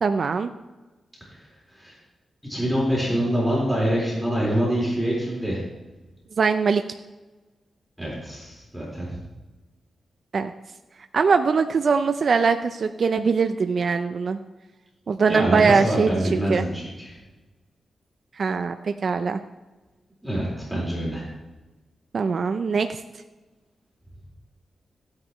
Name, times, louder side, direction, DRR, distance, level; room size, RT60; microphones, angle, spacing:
voice 1, 0.0-0.5 6.4-6.8 10.3-10.5 11.1-14.4 15.1-16.7 18.4-18.8 19.0-19.4 22.1-23.0, right 5 dB, 55° right, 8 dB, 0.5 m, -22 dB
voice 2, 2.5-5.6 8.0-9.2 15.3-17.2 20.2-21.3, equal, 5° right, -5 dB, 4.3 m, -25 dB
15.5 x 9.6 x 3.1 m, 1.2 s
wide cardioid pair, 105°, 0 cm